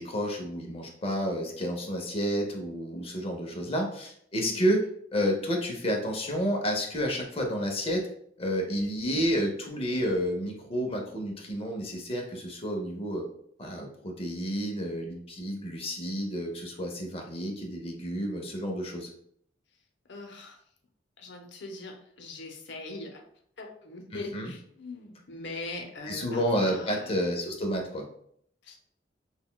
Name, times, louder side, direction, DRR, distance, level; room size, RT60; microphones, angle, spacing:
voice 1, 0.0-4.8 5.1-8.1 8.4-13.2 13.6-19.1 24.1-24.5 26.1-28.0, equal, 30° left, 2 dB, 0.7 m, -30 dB
voice 2, 20.1-20.6 21.2-23.2 23.6-27.2 28.6-28.7, left 2 dB, 70° left, 3 dB, 0.7 m, -41 dB
5.7 x 2.2 x 2.3 m, 0.67 s
head